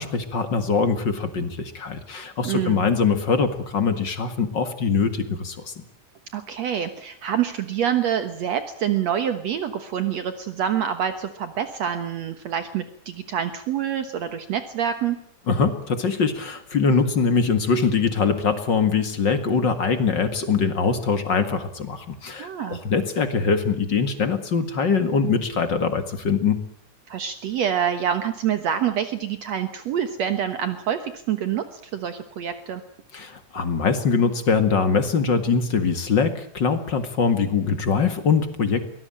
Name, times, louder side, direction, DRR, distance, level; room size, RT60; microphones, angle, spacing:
voice 1, 0.0-5.7 15.5-26.6 33.1-38.9, left 5 dB, 40° left, 10 dB, 2.2 m, -22 dB
voice 2, 2.4-2.9 6.3-15.2 22.4-22.8 27.1-32.8, right 9 dB, 65° right, 9 dB, 2.4 m, -26 dB
23.5 x 18.5 x 8.8 m, 0.66 s
omnidirectional pair, 3.5 m